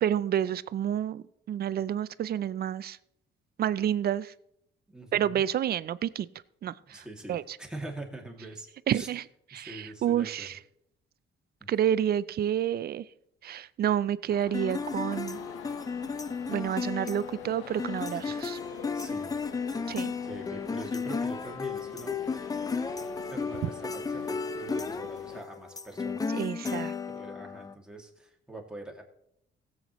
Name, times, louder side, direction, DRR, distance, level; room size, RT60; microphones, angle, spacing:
voice 1, 0.0-3.0 3.6-4.3 5.1-6.3 6.6-7.0 7.3-7.6 8.9-9.2 9.5-10.6 11.7-13.0 13.4-15.4 16.5-18.6 19.9-20.1 26.3-26.9, right 10 dB, 55° right, 18 dB, 0.4 m, -29 dB
voice 2, 4.9-5.5 6.8-9.1 9.5-10.5 11.6-11.7 18.2-18.4 18.9-19.3 19.7-19.9 20.2-22.2 23.3-26.4 27.1-29.0, right 2 dB, 5° right, 0 dB, 2.2 m, -44 dB
sound 1, 14.3-25.4, left 8 dB, 90° left, 0.9 m, -46 dB
sound 2, 14.5-27.7, left 5 dB, 20° left, 0.4 m, -34 dB
16.5 x 7.9 x 3.0 m, 0.75 s
cardioid pair, 90°, 20 cm